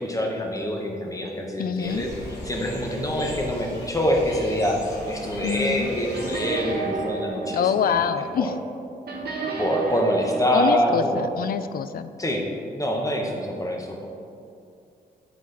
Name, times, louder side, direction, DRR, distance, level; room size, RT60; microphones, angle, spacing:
voice 1, 0.0-2.1 2.4-8.0 8.4-8.5 9.6-11.3 12.2-12.5 12.7-14.1, equal, 20° left, 0 dB, 1.2 m, -25 dB
voice 2, 1.6-2.0 5.4-5.9 7.5-8.5 10.5-12.1, left 7 dB, 60° left, 12 dB, 0.4 m, -25 dB
sound 1, 1.8-7.1, left 1 dB, 80° left, 1.6 m, -38 dB
sound 2, 6.1-8.8 9.1-10.4, right 4 dB, 65° right, 1.2 m, -31 dB
7.6 x 4.6 x 4.1 m, 2.4 s
cardioid pair, 65°, 17 cm